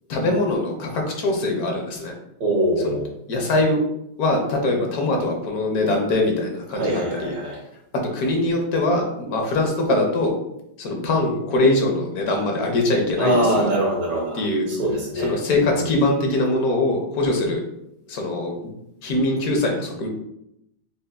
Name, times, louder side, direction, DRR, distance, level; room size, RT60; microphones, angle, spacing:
voice 1, 0.1-2.1 3.3-3.8 4.2-7.3 8.1-10.3 10.8-13.7 14.3-14.7 15.2-17.6 18.1-18.5 19.0-20.1, left 2 dB, 65° left, 2 dB, 1.1 m, -22 dB
voice 2, 2.4-3.1 6.8-7.6 13.2-15.9, right 1 dB, 75° right, -3 dB, 1.9 m, -23 dB
5.4 x 2.6 x 2.2 m, 0.80 s
omnidirectional pair, 1.9 m